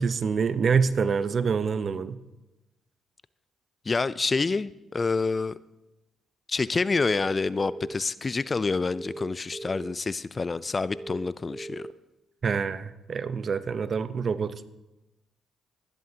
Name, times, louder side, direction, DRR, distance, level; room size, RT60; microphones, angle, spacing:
voice 1, 0.0-2.2 12.4-14.6, right 5 dB, 50° right, 13 dB, 0.8 m, -26 dB
voice 2, 3.9-5.5 6.5-11.9, left 4 dB, 35° left, 17 dB, 0.4 m, -27 dB
sound 1, 7.0-7.9 8.9-9.9 10.9-11.9, right 2 dB, 15° right, 0.9 m, -39 dB
24.5 x 11.0 x 2.9 m, 0.98 s
hypercardioid pair, 50°, 0 cm